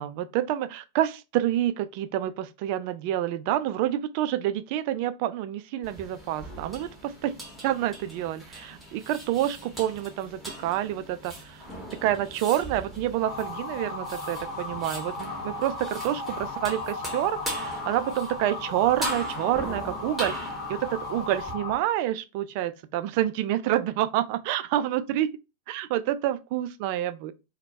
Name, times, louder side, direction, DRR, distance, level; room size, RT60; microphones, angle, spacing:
voice 1, 0.0-7.4 7.6-11.7 12.0-25.3 25.7-27.3, right 12 dB, 45° right, 0.3 m, -28 dB
sound 1, 5.8-21.5, equal, ahead, 1.3 m, -40 dB
Motor vehicle (road) / Siren, 13.2-21.8, left 3 dB, 40° left, 0.7 m, -36 dB
4.3 x 2.2 x 2.7 m
figure-of-eight pair, 90°, 0 cm